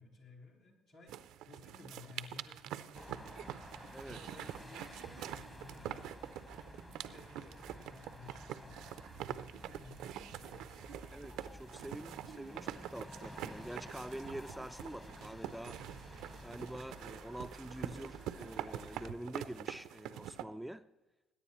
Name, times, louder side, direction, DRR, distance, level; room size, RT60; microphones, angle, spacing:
voice 1, 0.0-3.6 4.1-6.1 6.6-10.8, left 2 dB, 70° left, -4 dB, 4.3 m, -57 dB
sound 1, 1.1-20.4, right 11 dB, 70° right, 0.5 m, -46 dB
sound 2, 2.9-19.1, left 1 dB, 20° left, 1.4 m, -53 dB
voice 2, 11.1-15.8 16.4-20.9, right 1 dB, 5° right, 11 dB, 0.4 m, -46 dB
22.0 x 9.5 x 3.1 m, 1.1 s
hypercardioid pair, 55°, 0 cm